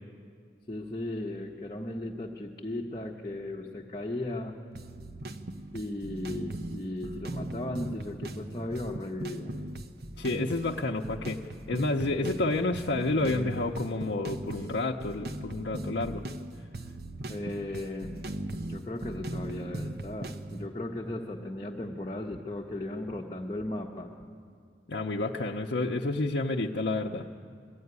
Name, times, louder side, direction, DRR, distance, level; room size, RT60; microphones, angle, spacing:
voice 1, 0.7-4.6 5.7-9.5 17.3-18.1 18.7-24.1, left 1 dB, 25° left, -2 dB, 1.0 m, -36 dB
sound 1, 4.7-20.7, right 1 dB, 60° right, 0.9 m, -39 dB
voice 2, 10.2-11.4 11.7-16.2 24.9-27.3, left 2 dB, 85° left, -1 dB, 0.7 m, -30 dB
20.5 x 13.5 x 9.5 m, 2.2 s
head